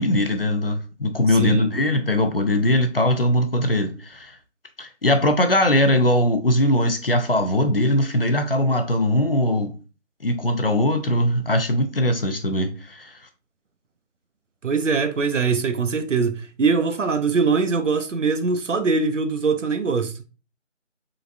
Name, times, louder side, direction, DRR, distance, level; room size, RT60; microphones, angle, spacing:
voice 1, 0.0-4.4 4.8-9.7 10.2-13.2, left 1 dB, 50° left, 0.6 m, -21 dB
voice 2, 1.3-1.7 14.6-20.2, right 4 dB, 75° right, 0.7 m, -22 dB
3.9 x 3.5 x 2.5 m
figure-of-eight pair, 170°, 38 cm